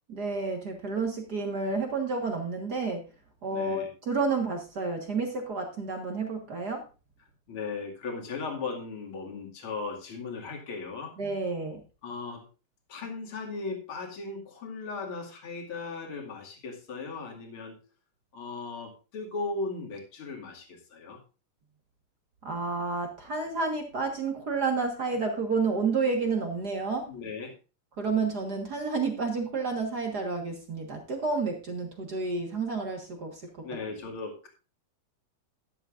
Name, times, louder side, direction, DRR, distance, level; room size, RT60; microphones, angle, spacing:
voice 1, 0.1-3.0 3.4-6.8 11.2-11.8 22.4-27.1 28.0-33.5, right 4 dB, 50° right, 3 dB, 1.2 m, -30 dB
voice 2, 3.5-3.9 7.5-11.2 12.0-12.4 12.9-17.8 18.3-21.2 27.1-27.5 33.6-34.5, left 4 dB, 40° left, 0 dB, 2.7 m, -37 dB
13.0 x 11.0 x 2.5 m, 0.32 s
omnidirectional pair, 3.9 m